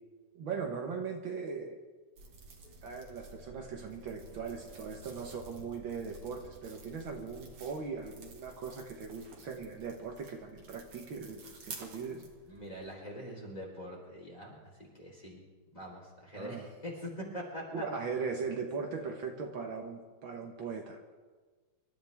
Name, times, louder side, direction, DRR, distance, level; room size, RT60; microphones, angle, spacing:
voice 1, 0.4-1.8 2.8-12.2 16.4-16.6 17.7-21.0, right 5 dB, 65° right, 3 dB, 2.0 m, -39 dB
sound 1, 2.2-12.9, right 3 dB, 85° right, 2.9 m, -52 dB
voice 2, 12.1-15.4 15.7-17.8, equal, 20° left, -2 dB, 4.1 m, -44 dB
26.5 x 13.0 x 3.5 m, 1.4 s
omnidirectional pair, 2.4 m